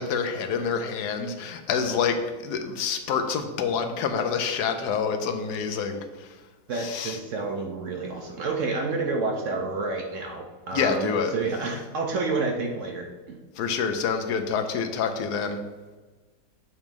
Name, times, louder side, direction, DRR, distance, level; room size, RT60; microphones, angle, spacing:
voice 1, 0.0-6.4 6.8-7.2 10.7-11.3 13.5-15.6, left 6 dB, 75° left, 6 dB, 1.1 m, -27 dB
voice 2, 6.7-13.4, right 3 dB, 60° right, 2 dB, 0.8 m, -29 dB
7.0 x 3.1 x 5.2 m, 1.3 s
omnidirectional pair, 1.8 m